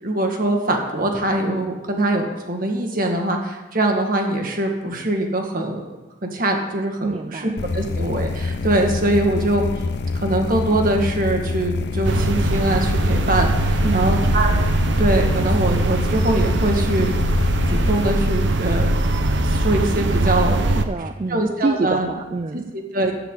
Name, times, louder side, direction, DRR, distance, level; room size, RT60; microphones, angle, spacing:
voice 1, 0.0-5.9 6.2-7.4 7.7-9.6 10.1-14.5 15.0-17.1 17.7-19.0 19.5-20.6 21.3-22.1 22.9-23.1, right 1 dB, 45° right, 2 dB, 1.9 m, -22 dB
voice 2, 7.0-7.6 13.8-14.3 20.8-22.7, right 3 dB, 30° right, 9 dB, 0.4 m, -26 dB
sound 1, 7.6-18.1, left 3 dB, 60° left, 0.5 m, -26 dB
sound 2, 12.0-20.9, right 1 dB, 70° right, 0.8 m, -21 dB
14.5 x 9.9 x 4.0 m, 1.1 s
head